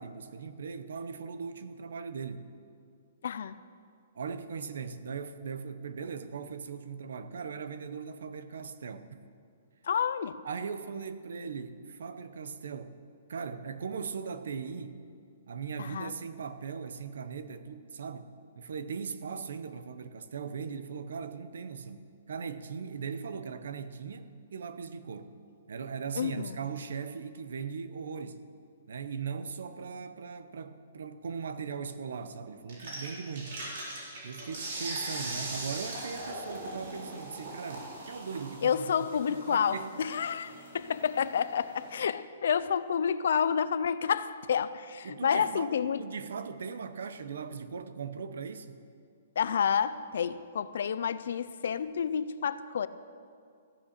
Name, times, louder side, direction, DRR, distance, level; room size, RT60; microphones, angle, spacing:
voice 1, 0.0-2.5 4.1-9.2 10.4-12.9 13.3-15.0 15.5-25.3 25.7-28.4 28.9-33.6 34.2-38.9 39.3-39.9 45.0-45.7 46.0-48.8, right 6 dB, 70° right, 12 dB, 0.8 m, -39 dB
voice 2, 3.2-3.5 9.8-10.4 15.8-16.1 26.2-26.6 38.6-46.0 49.4-52.9, left 7 dB, 60° left, 15 dB, 0.5 m, -29 dB
sound 1, 32.7-41.9, right 2 dB, 50° right, 3.6 m, -41 dB
15.5 x 8.4 x 6.6 m, 2.2 s
hypercardioid pair, 175°, 0 cm